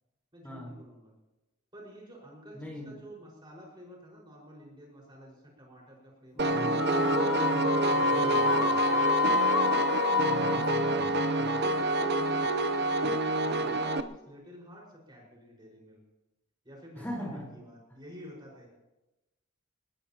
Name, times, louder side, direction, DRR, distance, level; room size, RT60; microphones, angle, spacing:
voice 1, 0.3-1.1 1.7-9.6 10.6-16.0 16.6-18.7, equal, 20° right, -3 dB, 5.2 m, -50 dB
voice 2, 2.5-3.0 6.3-8.7 10.2-11.1 11.4-11.6 17.0-17.5, equal, 10° left, -2 dB, 4.4 m, -40 dB
Piano, 6.4-14.0, right 2 dB, 50° right, 0.7 m, -28 dB
sound 1, 6.8-12.2, left 5 dB, 75° left, 1.0 m, -29 dB
24.0 x 20.0 x 3.0 m, 1.0 s
head